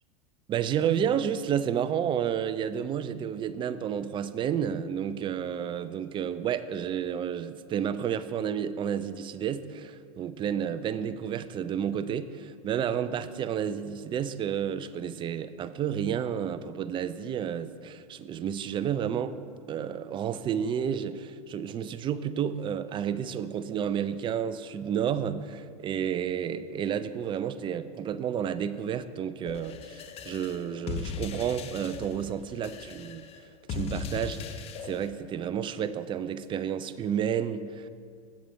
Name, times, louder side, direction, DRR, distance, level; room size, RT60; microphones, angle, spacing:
voice 1, 0.5-19.4 19.7-33.3 33.7-37.9, right 8 dB, 25° right, 13 dB, 0.4 m, -31 dB
sound 1, 29.5-35.1, left 6 dB, 35° left, 0.6 m, -38 dB
8.3 x 7.3 x 5.3 m, 2.1 s
hypercardioid pair, 95°, 18 cm